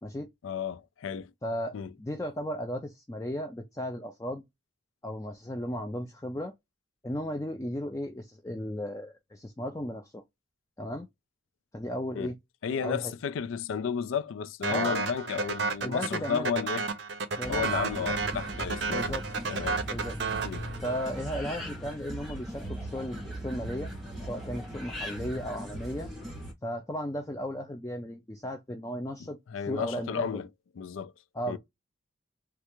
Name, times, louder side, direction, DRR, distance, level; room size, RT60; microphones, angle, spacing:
voice 1, 0.4-1.3 1.7-1.9 12.2-12.3 12.6-16.9 17.5-19.2 19.5-19.9 20.4-20.7 29.5-30.5 30.8-31.1 31.5-31.6, left 7 dB, 85° left, 0.4 m, -33 dB
voice 2, 1.4-4.4 5.0-6.5 7.0-10.2 10.8-11.1 11.7-12.4 12.8-13.1 14.7-15.0 15.8-16.6 17.4-17.9 18.9-19.2 19.9-20.2 20.8-23.9 24.2-26.1 26.6-29.4 29.7-30.4 31.3-31.6, equal, 15° left, 0.4 m, -35 dB
sound 1, 14.6-21.3, right 4 dB, 60° right, 0.6 m, -32 dB
sound 2, 17.4-26.5, right 1 dB, ahead, 1.3 m, -39 dB
3.3 x 2.4 x 2.9 m
head